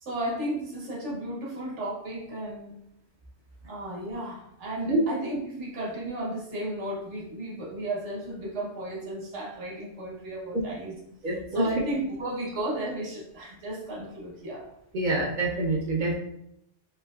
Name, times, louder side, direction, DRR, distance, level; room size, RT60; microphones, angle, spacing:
voice 1, 0.0-2.7 3.7-10.9 11.2-14.7, right 1 dB, 75° right, -3 dB, 1.1 m, -34 dB
voice 2, 11.2-11.6 14.9-16.1, right 2 dB, 60° right, -1 dB, 0.5 m, -26 dB
3.1 x 2.6 x 2.2 m, 0.78 s
omnidirectional pair, 1.2 m